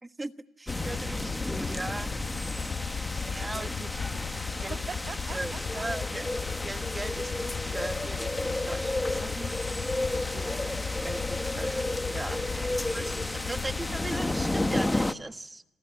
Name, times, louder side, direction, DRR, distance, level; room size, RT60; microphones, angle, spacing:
voice 1, 0.0-0.3 0.6-2.1 3.3-3.7 4.6-4.8 5.3-6.3 6.6-9.8 10.1-10.3 11.0-12.5 12.9-15.6, right 2 dB, 15° right, 10 dB, 1.3 m, -39 dB
sound 1, 0.7-14.8, left 6 dB, 55° left, 2.6 m, -36 dB
sound 2, 0.7-15.1, left 1 dB, 15° left, 1.2 m, -32 dB
voice 2, 3.4-4.3 4.5-5.8 10.3-10.8 12.3-13.2, right 5 dB, 45° right, 7 dB, 2.0 m, -45 dB
28.0 x 27.0 x 7.3 m, 0.89 s
cardioid pair, 90°, 0 cm